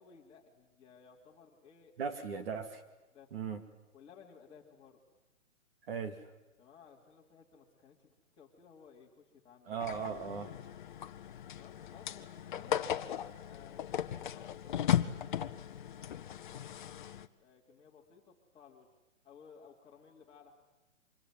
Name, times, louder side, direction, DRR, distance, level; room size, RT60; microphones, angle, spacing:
voice 1, 0.0-2.3 3.1-3.3 3.9-5.0 6.6-9.8 11.5-12.9 13.5-16.5 17.4-18.9 19.2-20.5, left 6 dB, 15° left, -2 dB, 3.1 m, -59 dB
voice 2, 2.0-2.8 3.3-3.6 5.9-6.2 9.7-10.5, right 6 dB, 50° right, 7 dB, 2.4 m, -38 dB
sound 1, 9.8-17.3, left 10 dB, 40° left, 1.0 m, -37 dB
25.5 x 22.5 x 9.4 m, 1.0 s
hypercardioid pair, 160°, 38 cm